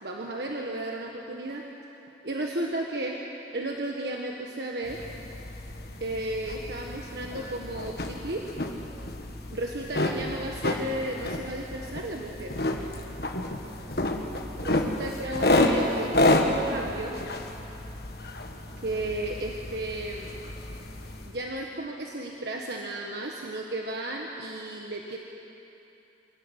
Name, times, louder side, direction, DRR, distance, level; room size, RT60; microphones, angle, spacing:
voice 1, 0.0-1.7 2.2-3.2 3.5-5.0 6.0-8.5 9.5-12.6 14.6-17.2 18.8-20.3 21.3-25.2, right 1 dB, 65° right, 0 dB, 1.5 m, -34 dB
sound 1, 4.9-21.3, left 1 dB, 60° left, 1.6 m, -30 dB
25.0 x 17.0 x 8.2 m, 3.0 s
head